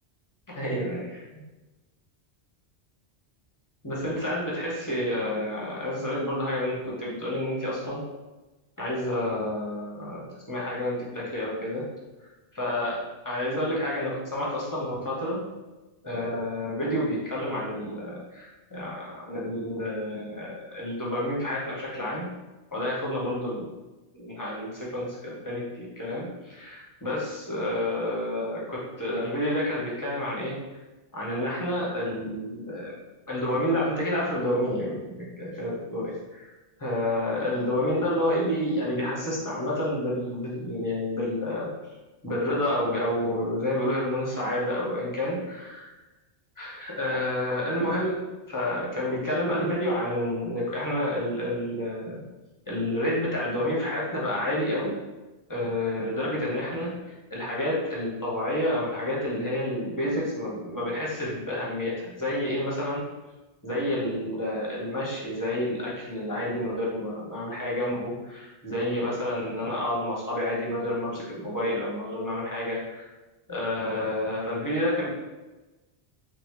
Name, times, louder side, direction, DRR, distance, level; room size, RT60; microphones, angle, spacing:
voice 1, 0.5-1.2 3.8-8.0 8.8-11.8 12.2-13.0 13.2-15.4 16.0-22.3 22.7-23.7 24.1-30.5 31.1-32.9 33.3-36.1 36.4-36.5 36.8-41.7 42.2-45.9 46.6-48.2 48.5-52.2 52.7-54.9 55.5-63.0 63.6-73.1 73.5-75.1, left 1 dB, 20° left, -5 dB, 0.9 m, -29 dB
3.4 x 3.0 x 3.6 m, 1.1 s
omnidirectional pair, 1.1 m